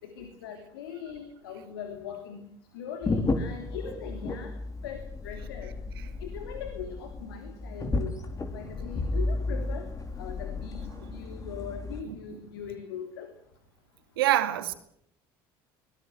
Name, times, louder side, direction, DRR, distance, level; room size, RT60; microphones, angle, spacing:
voice 1, 0.0-2.4 2.7-4.5 4.8-5.7 6.2-8.1 8.5-9.9 10.2-13.3, left 8 dB, 85° left, 3.3 m, -40 dB
sound 1, 3.0-12.0, left 2 dB, 30° left, 3.9 m, -33 dB
voice 2, 14.2-14.7, right 14 dB, 85° right, 2.4 m, -25 dB
23.0 x 20.0 x 7.9 m
hypercardioid pair, 70°, 12 cm